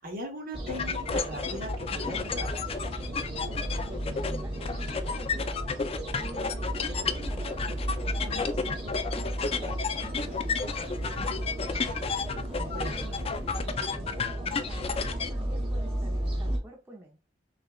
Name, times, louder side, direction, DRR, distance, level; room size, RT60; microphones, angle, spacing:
voice 1, 0.0-2.5 12.5-13.1, equal, 50° right, 2 dB, 1.2 m, -39 dB
sound 1, 0.5-16.6, right 1 dB, 30° right, 1.4 m, -34 dB
sound 2, 0.7-15.3, left 5 dB, 30° left, 0.4 m, -32 dB
voice 2, 3.9-5.5 6.2-7.6 8.2-9.8 10.2-11.8 12.6-17.2, right 1 dB, 15° right, -2 dB, 0.7 m, -48 dB
sound 3, 6.4-13.9, equal, 80° right, 1.5 m, -53 dB
6.3 x 2.4 x 2.3 m, 0.32 s
head